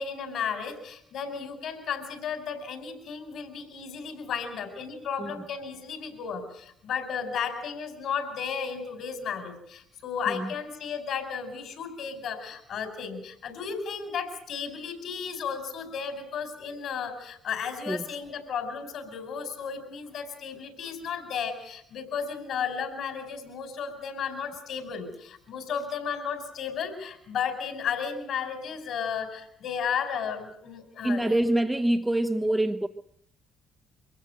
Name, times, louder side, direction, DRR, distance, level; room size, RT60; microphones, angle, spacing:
voice 1, 0.0-31.4, left 6 dB, 65° left, 8 dB, 4.6 m, -34 dB
voice 2, 31.0-32.9, right 1 dB, 10° right, 7 dB, 1.1 m, -25 dB
23.5 x 16.0 x 7.9 m, 0.72 s
hypercardioid pair, 55°, 0 cm